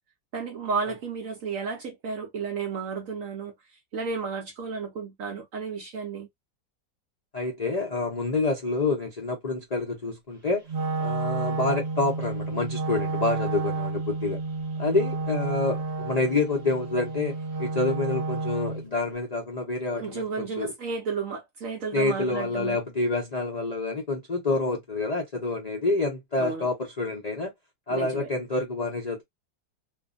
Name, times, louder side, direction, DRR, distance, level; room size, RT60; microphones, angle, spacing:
voice 1, 0.3-3.5 3.9-6.3 19.9-22.8 26.4-26.7 27.9-28.3, right 5 dB, 65° right, 0.8 m, -32 dB
voice 2, 7.3-10.7 11.0-14.4 14.8-20.7 21.9-27.5 27.9-29.2, left 3 dB, 70° left, 0.4 m, -28 dB
Wind instrument woodwind instrument, 10.7-18.9, right 3 dB, 40° right, 1.0 m, -31 dB
2.7 x 2.5 x 2.4 m
omnidirectional pair, 2.0 m